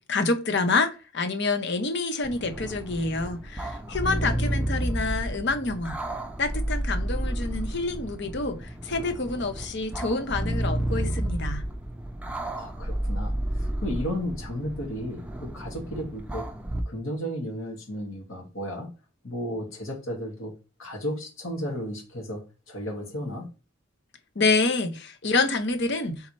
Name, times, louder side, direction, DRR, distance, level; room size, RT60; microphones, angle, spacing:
voice 1, 0.1-6.0 6.4-11.6 24.4-26.3, left 3 dB, 55° left, 0.8 m, -27 dB
sound 1, 2.2-16.8, right 1 dB, 5° right, 0.5 m, -31 dB
voice 2, 12.5-16.5 16.9-18.9 19.2-20.5 20.8-22.4 22.7-23.5, equal, 80° left, 2.0 m, -34 dB
4.2 x 3.9 x 3.1 m
head